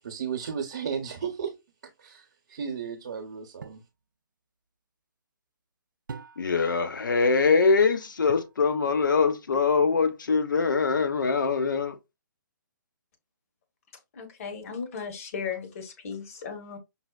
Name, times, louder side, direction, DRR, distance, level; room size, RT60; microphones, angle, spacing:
voice 1, 0.0-1.5 2.0-3.8, right 7 dB, 55° right, 0.8 m, -34 dB
sound 1, 3.6-3.9 6.1-6.7 8.3-8.6 10.7-11.2, right 5 dB, 75° right, 0.4 m, -44 dB
voice 2, 6.4-12.0, left 4 dB, 70° left, 0.7 m, -23 dB
voice 3, 14.1-16.8, left 6 dB, 45° left, 1.2 m, -36 dB
5.4 x 2.1 x 2.3 m
figure-of-eight pair, 140°, 11 cm